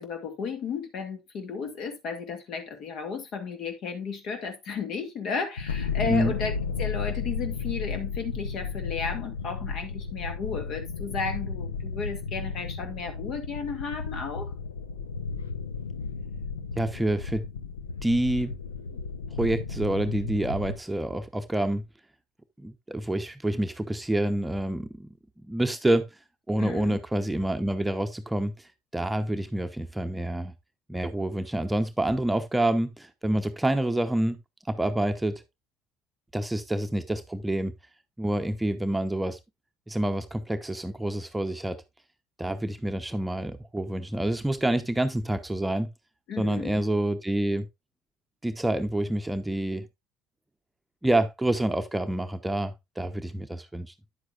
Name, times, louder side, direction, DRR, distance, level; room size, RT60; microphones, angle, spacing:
voice 1, 0.0-14.5 26.6-27.0 46.3-46.8, left 5 dB, 55° left, 2.1 m, -34 dB
sound 1, 5.6-20.8, left 5 dB, 90° left, 0.6 m, -34 dB
voice 2, 16.8-17.4 18.0-18.5 19.4-21.8 22.6-25.1 25.5-26.1 26.5-28.5 28.9-30.5 30.9-34.4 34.7-35.4 36.3-37.7 38.2-39.4 39.9-41.8 42.4-45.9 46.4-47.7 48.4-49.9 51.0-53.9, right 1 dB, 10° right, 0.9 m, -27 dB
9.6 x 7.8 x 2.4 m
hypercardioid pair, 65°, 0 cm